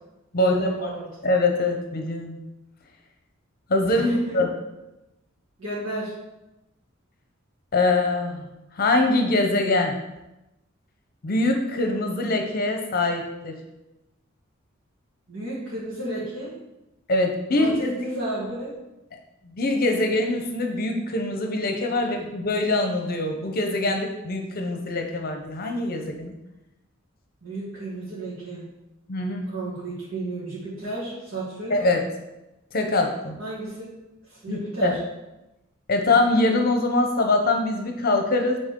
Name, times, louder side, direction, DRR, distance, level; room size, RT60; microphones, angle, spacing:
voice 1, 0.4-1.1 3.9-4.4 5.6-6.1 15.3-16.5 17.6-18.7 22.0-22.2 27.4-28.7 29.5-31.7 33.4-33.9 34.3-35.0, right 2 dB, 80° right, -12 dB, 2.3 m, -32 dB
voice 2, 1.2-2.4 3.7-4.5 7.7-8.4 8.8-10.0 11.2-13.5 17.1-17.7 19.5-26.3 29.1-29.5 31.7-32.0 32.7-33.4 34.5-34.9 35.9-38.6, left 2 dB, 50° left, 4 dB, 0.7 m, -23 dB
8.8 x 4.1 x 3.7 m, 0.96 s
head